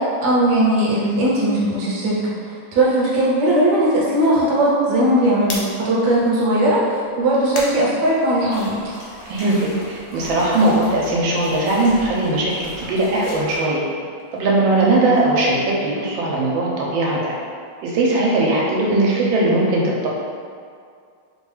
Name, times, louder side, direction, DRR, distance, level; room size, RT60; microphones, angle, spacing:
voice 1, 0.0-8.9, right 1 dB, 70° right, -5 dB, 1.2 m, -18 dB
sound 1, 5.4-8.8 9.2-12.2 12.4-16.6, left 2 dB, 80° left, 1.3 m, -39 dB
sound 2, 8.5-13.6, equal, 55° left, 1.4 m, -37 dB
voice 2, 9.3-13.8 14.3-17.3 17.8-20.1, right 2 dB, 85° right, -3 dB, 1.3 m, -19 dB
3.2 x 2.2 x 3.1 m, 2.2 s
omnidirectional pair, 2.1 m